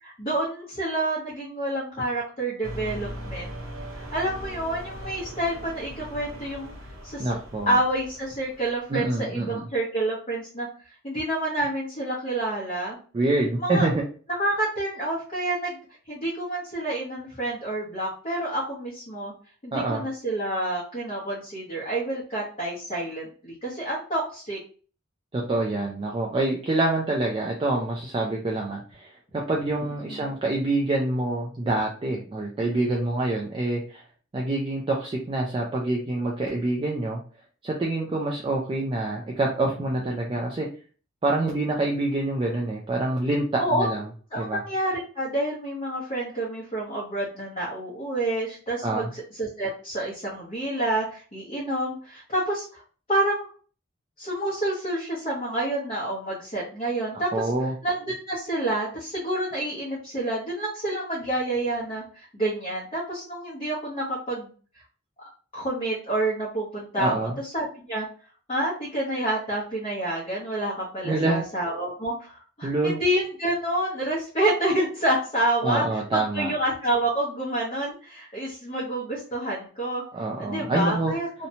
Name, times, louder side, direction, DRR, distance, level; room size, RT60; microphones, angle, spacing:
voice 1, 0.0-3.5 4.0-6.7 7.0-7.3 7.7-10.7 11.0-13.0 13.6-13.9 14.4-15.8 16.1-19.3 19.6-24.6 30.0-30.3 43.6-43.9 44.3-52.8 53.1-53.5 54.2-57.3 57.8-64.5 65.2-67.1 67.4-68.1 68.5-80.0 80.4-81.5, right 1 dB, 30° left, -6 dB, 0.7 m, -28 dB
sound 1, 2.6-8.9, equal, 70° right, 0.6 m, -39 dB
voice 2, 7.2-7.8 8.9-9.7 13.1-14.0 19.7-20.0 25.3-34.0 34.3-37.2 37.6-40.7 41.2-44.0 44.4-44.6 48.8-49.1 57.3-57.7 67.0-67.4 71.0-71.4 72.6-73.0 75.6-76.5 80.1-81.1, right 2 dB, 25° right, -1 dB, 0.3 m, -26 dB
2.7 x 2.1 x 2.7 m, 0.40 s
head